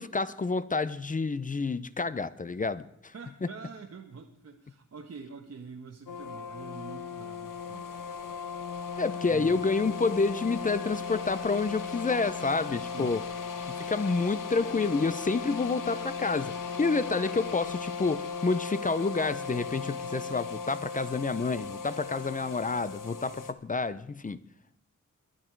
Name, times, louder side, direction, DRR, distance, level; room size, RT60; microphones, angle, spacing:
voice 1, 0.0-3.1 9.0-13.2 13.7-24.4, left 4 dB, 25° left, 15 dB, 0.5 m, -29 dB
voice 2, 3.1-8.1 9.2-9.6 12.6-13.2, right 5 dB, 50° right, 2 dB, 1.2 m, -45 dB
sound 1, 6.1-23.5, left 5 dB, 85° left, 1.1 m, -37 dB
sound 2, 10.5-17.4, left 4 dB, 55° left, 2.6 m, -52 dB
22.5 x 11.0 x 4.6 m, 0.74 s
wide cardioid pair, 155°, 31 cm